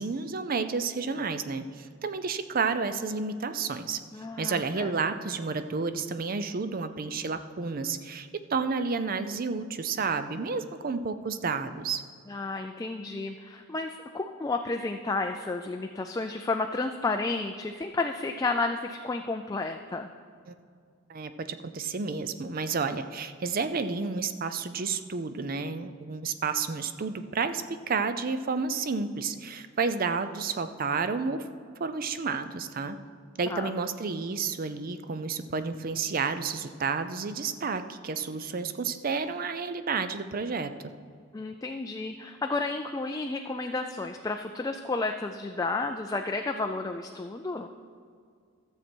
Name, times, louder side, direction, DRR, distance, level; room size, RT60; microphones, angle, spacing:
voice 1, 0.0-4.0 4.4-12.0 20.5-20.6 21.1-31.5 31.8-33.0 33.4-40.7, right 4 dB, 45° right, 10 dB, 0.5 m, -31 dB
voice 2, 4.1-4.9 12.3-20.1 33.5-33.7 41.3-47.7, left 3 dB, 20° left, 4 dB, 0.3 m, -32 dB
13.0 x 7.4 x 4.4 m, 2.2 s
head